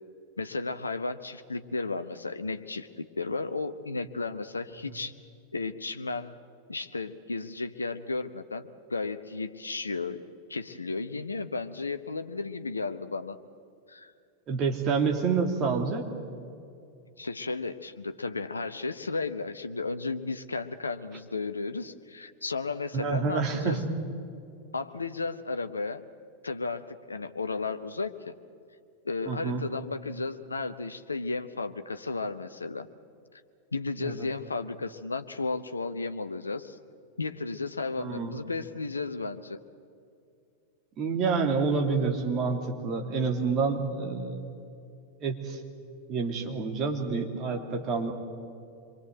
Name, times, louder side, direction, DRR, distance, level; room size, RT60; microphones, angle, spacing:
voice 1, 0.4-5.1 5.5-6.4 6.7-10.2 10.5-13.4 13.9-14.1 17.2-23.8 24.7-26.0 26.4-28.4 29.0-32.9 33.7-36.8 37.2-39.6, left 3 dB, 80° left, 10 dB, 0.9 m, -34 dB
voice 2, 14.5-16.1 22.9-23.8 29.3-29.6 34.0-34.3 38.0-38.3 41.0-44.6 45.2-45.6 46.1-48.1, right 5 dB, 35° right, 2 dB, 3.0 m, -28 dB
26.5 x 23.5 x 7.9 m, 2.5 s
figure-of-eight pair, 90°, 0 cm